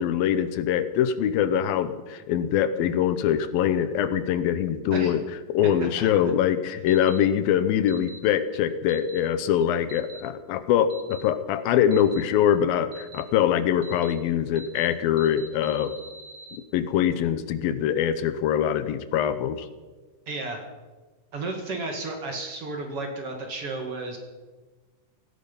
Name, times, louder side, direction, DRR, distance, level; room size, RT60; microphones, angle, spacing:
voice 1, 0.0-5.2 5.5-15.9 16.5-19.7, left 9 dB, 85° left, 12 dB, 2.7 m, -23 dB
sound 1, 6.9-7.2 7.9-8.2 8.9-9.2 9.9-10.2 10.9-11.2 11.9-12.2 12.9-13.2 13.8-14.1 14.5-14.9 15.2-16.6, right 4 dB, 75° right, 1.0 m, -44 dB
voice 2, 20.3-20.6 21.3-24.2, right 3 dB, 45° right, 3 dB, 2.6 m, -33 dB
17.5 x 15.0 x 5.5 m, 1.3 s
omnidirectional pair, 4.1 m